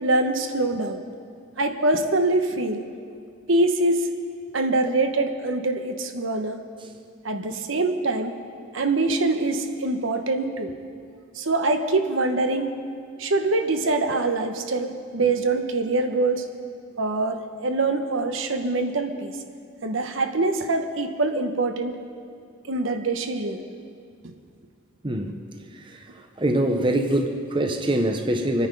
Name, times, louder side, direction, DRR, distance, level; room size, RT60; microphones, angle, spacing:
voice 1, 0.0-1.0 1.6-2.8 3.5-4.1 4.5-6.6 7.2-8.4 8.7-10.7 11.3-12.8 13.2-16.5 17.0-19.3 19.8-22.0 22.7-23.6 24.2-24.3, right 2 dB, 70° right, 6 dB, 1.0 m, -24 dB
voice 2, 25.0-25.4 25.7-26.0 26.4-28.7, right 1 dB, 25° right, 5 dB, 0.8 m, -24 dB
25.5 x 9.6 x 5.3 m, 2.2 s
head